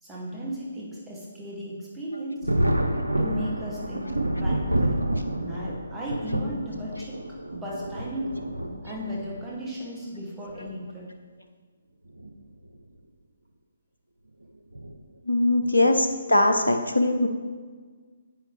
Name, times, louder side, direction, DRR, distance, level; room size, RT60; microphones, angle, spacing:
voice 1, 0.0-2.5 3.2-5.1 5.4-7.2 7.5-8.4 8.8-11.1 15.5-15.8, equal, 10° right, -5 dB, 2.5 m, -36 dB
Thunder, 2.4-9.5 10.5-10.6 12.1-12.3 12.7-12.8 14.7-14.9 15.6-16.0, right 1 dB, 85° right, 0.8 m, -28 dB
voice 2, 15.3-17.3, left 2 dB, 85° left, 6 dB, 0.9 m, -21 dB
10.0 x 8.4 x 3.4 m, 1.5 s
figure-of-eight pair, 135°, 0 cm